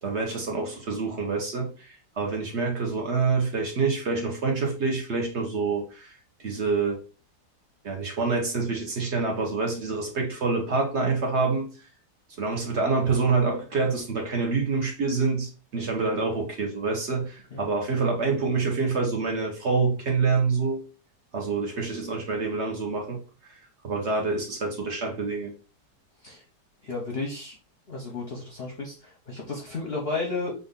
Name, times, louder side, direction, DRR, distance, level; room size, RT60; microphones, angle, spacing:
voice 1, 0.0-6.1 6.4-7.0 7.8-11.7 12.4-20.8 21.3-23.2 23.4-23.6 23.8-25.5, right 4 dB, 50° right, 1.0 m, -26 dB
voice 2, 26.8-27.6 27.9-30.5, left 3 dB, 50° left, 0.8 m, -33 dB
3.8 x 2.6 x 3.6 m
omnidirectional pair, 1.9 m